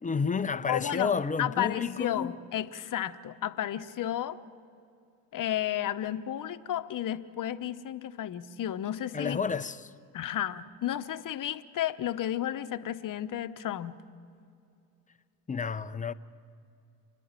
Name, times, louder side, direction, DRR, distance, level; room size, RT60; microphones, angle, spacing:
voice 1, 0.0-2.4 9.1-9.9 15.5-16.1, left 5 dB, 15° left, 0.6 m, -30 dB
voice 2, 0.7-4.4 5.3-9.4 10.1-14.0, left 11 dB, 40° left, 1.0 m, -32 dB
28.5 x 10.5 x 9.0 m
hypercardioid pair, 75°, 48 cm